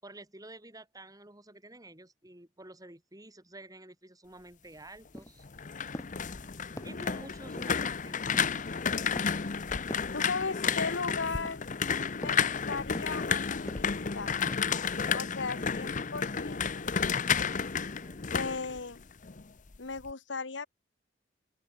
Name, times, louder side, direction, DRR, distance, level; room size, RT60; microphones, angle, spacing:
voice 1, 0.0-5.5 6.8-8.7 15.5-15.7 18.0-18.2, right 2 dB, 20° right, 5.9 m, -50 dB
sound 1, 4.7-4.8 5.1-5.5 5.9-6.3 6.8-7.1 7.6-7.9 8.3-8.6 9.2-9.5 9.9-10.2 10.7-11.0 11.5-11.8 12.2-12.5 12.9-13.3 13.7-14.0 14.5-14.8 15.1-15.5 15.8-15.9, equal, 15° left, 6.5 m, -44 dB
sound 2, 5.4-19.4 19.7-20.1, left 6 dB, 45° left, 0.8 m, -31 dB
voice 2, 10.1-11.6 12.2-14.4 15.1-16.9 18.3-19.0 19.8-20.7, left 4 dB, 90° left, 1.3 m, -37 dB
open air
head